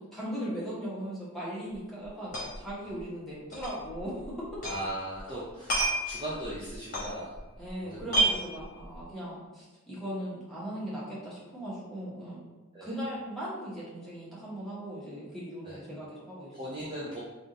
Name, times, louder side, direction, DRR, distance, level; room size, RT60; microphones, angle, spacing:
voice 1, 0.1-4.5 7.6-12.4 12.8-16.6, equal, ahead, -9 dB, 1.1 m, -38 dB
sound 1, 1.7-1.8 2.0-2.7 3.0-3.1 3.5-4.9 5.1-7.7 8.0-9.0, right 2 dB, 35° left, 1.1 m, -30 dB
voice 2, 4.6-7.4 7.8-8.1 12.7-12.9 15.6-15.8 16.5-17.2, right 1 dB, 20° right, -7 dB, 0.5 m, -38 dB
3.5 x 2.5 x 3.9 m, 1.2 s
head